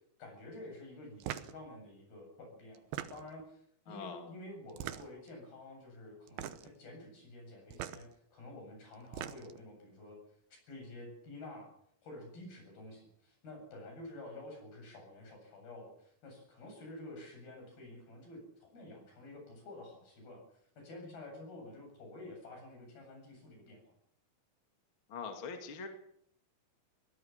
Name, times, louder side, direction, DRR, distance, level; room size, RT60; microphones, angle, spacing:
voice 1, 0.2-10.2 10.7-11.7 12.0-20.4 20.8-23.9, left 2 dB, 75° left, 2 dB, 9.7 m, -50 dB
sound 1, 1.2-1.6 2.7-3.4 4.7-5.3 6.3-6.8 7.7-8.0 8.9-9.6, right 11 dB, 80° right, 2.8 m, -41 dB
voice 2, 3.9-4.3 25.1-25.9, left 5 dB, 40° left, 5 dB, 2.7 m, -43 dB
22.0 x 18.0 x 7.3 m, 0.68 s
omnidirectional pair, 4.3 m